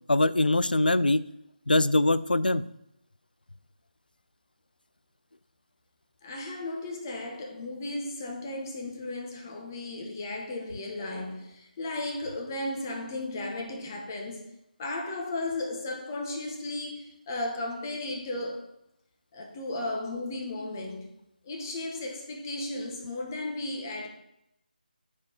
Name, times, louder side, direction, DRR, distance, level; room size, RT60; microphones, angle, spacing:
voice 1, 0.1-1.2 1.7-2.6, left 2 dB, 70° left, 0.5 m, -22 dB
voice 2, 6.2-14.5 14.8-18.7 19.3-21.1 21.4-24.1, left 2 dB, 20° left, 1.2 m, -35 dB
9.4 x 4.9 x 4.6 m
figure-of-eight pair, 155°, 5 cm